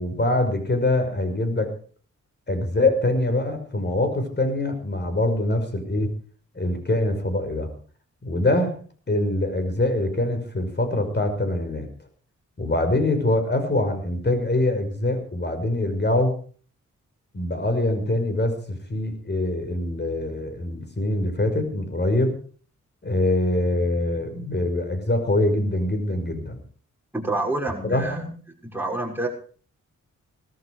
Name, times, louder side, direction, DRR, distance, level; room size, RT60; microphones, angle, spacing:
voice 1, 0.0-1.7 2.5-6.1 6.5-7.7 8.2-8.7 9.1-11.9 12.6-16.4 17.3-22.3 23.0-26.6 27.8-28.3, left 1 dB, 35° left, 7 dB, 5.7 m, -24 dB
voice 2, 27.1-28.2 28.7-29.3, right 2 dB, 5° right, 0 dB, 6.4 m, -27 dB
18.5 x 14.5 x 4.9 m, 0.43 s
cardioid pair, 75°, 30 cm